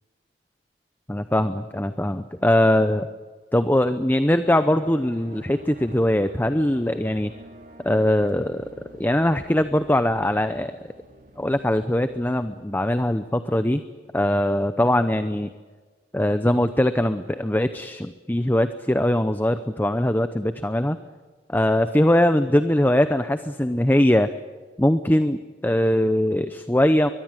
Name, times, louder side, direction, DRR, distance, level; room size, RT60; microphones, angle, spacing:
voice 1, 1.1-3.1 3.5-7.3 7.8-8.7 9.0-10.9 11.4-13.8 14.1-15.5 16.1-21.0 21.5-24.3 24.8-27.1, left 1 dB, 10° left, 10 dB, 0.7 m, -21 dB
sound 1, 4.4-12.3, right 1 dB, 50° right, 2.8 m, -48 dB
22.5 x 22.0 x 9.1 m, 1.4 s
head